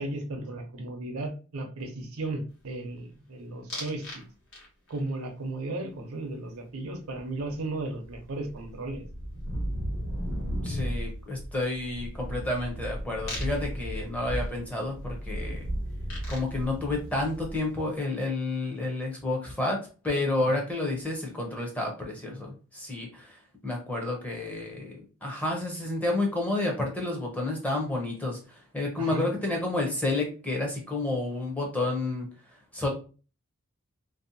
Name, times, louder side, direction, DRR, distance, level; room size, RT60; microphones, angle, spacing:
voice 1, 0.0-4.2 4.9-9.0 20.4-20.6 29.0-29.3, right 2 dB, 75° right, 5 dB, 0.6 m, -35 dB
sound 1, 3.7-4.2 4.5-5.0 7.4-7.5 7.8-17.8, equal, 60° left, 1.1 m, -35 dB
voice 2, 10.6-15.7 16.3-19.8 20.0-32.9, left 2 dB, 5° left, 0 dB, 0.6 m, -30 dB
2.6 x 2.1 x 2.5 m, 0.35 s
head